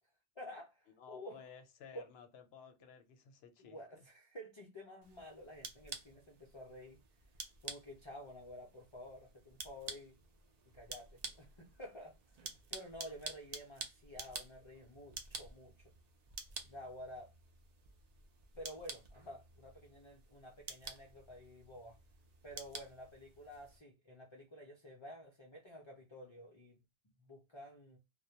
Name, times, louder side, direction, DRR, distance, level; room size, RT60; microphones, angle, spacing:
voice 1, 0.4-1.4 1.9-2.1 3.6-7.0 7.6-10.2 10.7-12.1 12.7-15.9 16.6-17.3 18.6-22.0 22.4-26.8 27.2-28.0, left 1 dB, 50° left, 0.3 m, -51 dB
voice 2, 1.0-4.0, left 6 dB, 65° left, 0.8 m, -56 dB
sound 1, 5.0-23.8, right 4 dB, 65° right, 0.4 m, -50 dB
2.2 x 2.0 x 2.7 m
omnidirectional pair, 1.2 m